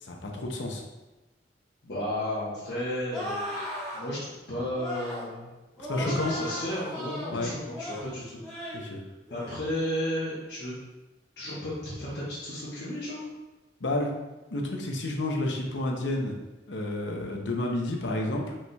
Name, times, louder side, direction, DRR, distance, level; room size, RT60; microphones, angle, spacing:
voice 1, 0.0-0.8 5.9-6.3 7.3-7.5 8.7-9.0 13.8-14.1 14.5-16.4 16.7-18.6, left 1 dB, 80° left, 1 dB, 0.7 m, -30 dB
voice 2, 1.8-3.5 3.9-4.2 4.5-5.5 5.9-8.7 9.3-10.7 11.4-13.2, left 1 dB, 60° left, -10 dB, 1.2 m, -33 dB
sound 1, 3.1-4.0 4.7-5.3 5.8-7.3 7.7-8.1 8.4-8.8 9.3-9.6, left 1 dB, 5° left, 1.5 m, -36 dB
4.7 x 4.1 x 2.3 m, 1.1 s
head